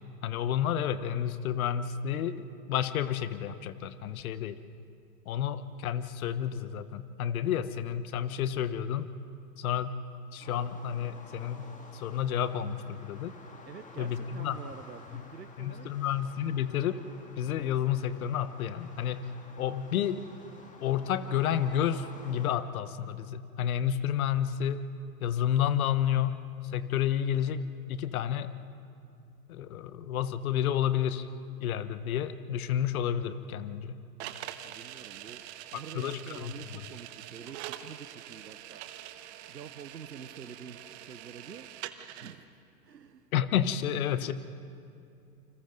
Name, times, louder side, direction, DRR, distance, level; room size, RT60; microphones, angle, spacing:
voice 1, 0.2-4.6 5.3-9.1 9.6-10.0 10.3-11.7 11.9-13.4 14.0-14.6 15.1-15.2 15.6-17.0 17.4-19.3 19.6-20.2 20.8-24.8 25.2-28.5 29.5-31.3 31.6-34.0 35.9-36.5 43.3-44.3, left 9 dB, 60° left, 13 dB, 1.2 m, -30 dB
under bridge heavy traffic, 10.4-22.6, left 3 dB, 15° left, 2.2 m, -52 dB
voice 2, 13.6-15.9 34.6-35.4 35.7-38.8 39.5-41.7 42.2-42.5 42.8-43.3 44.1-44.3, right 7 dB, 85° right, 10 dB, 1.2 m, -47 dB
sound 1, 34.2-42.3, right 12 dB, 45° right, 1.2 m, -44 dB
29.0 x 26.5 x 4.0 m, 2.5 s
hypercardioid pair, 110°, 48 cm